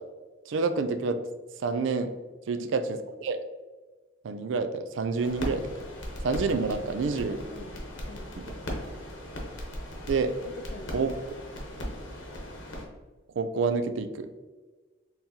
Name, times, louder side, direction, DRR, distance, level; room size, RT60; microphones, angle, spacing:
voice 1, 0.5-1.2 1.6-2.1 2.5-2.8 3.2-3.4 4.2-5.7 6.2-7.4 10.1-10.3 10.9-11.1 13.4-14.3, right 4 dB, 75° right, 9 dB, 0.4 m, -28 dB
sound 1, 5.2-12.9, equal, 80° left, 1.0 m, -38 dB
voice 2, 7.1-8.3 10.4-11.0, left 3 dB, 50° left, 6 dB, 0.5 m, -46 dB
4.3 x 3.7 x 2.7 m, 1.3 s
head